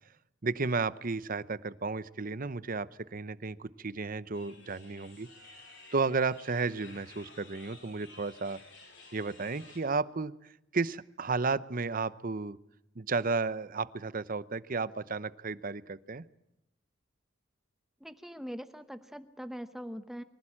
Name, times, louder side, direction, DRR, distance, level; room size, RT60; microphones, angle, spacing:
voice 1, 0.4-5.3 5.9-8.6 9.1-10.3 10.7-12.6 13.0-16.2, right 4 dB, 45° right, 16 dB, 0.8 m, -33 dB
sound 1, 4.3-9.8, left 3 dB, 70° left, 7.6 m, -54 dB
voice 2, 18.0-20.2, equal, ahead, 10 dB, 0.9 m, -42 dB
24.0 x 16.0 x 8.7 m, 0.88 s
head